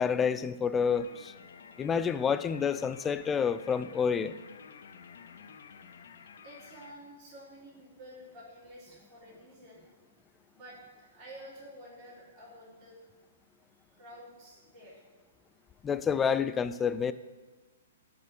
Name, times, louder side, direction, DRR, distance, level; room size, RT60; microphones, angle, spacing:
voice 1, 0.0-1.3 1.8-4.3 15.8-17.1, left 6 dB, 15° left, 14 dB, 0.4 m, -28 dB
sound 1, 0.9-6.9, left 6 dB, 60° left, 0.7 m, -52 dB
voice 2, 6.4-9.8 10.5-13.0 13.9-15.0, equal, 20° right, -10 dB, 4.2 m, -50 dB
11.0 x 5.2 x 7.8 m, 1.3 s
figure-of-eight pair, 115°, 0 cm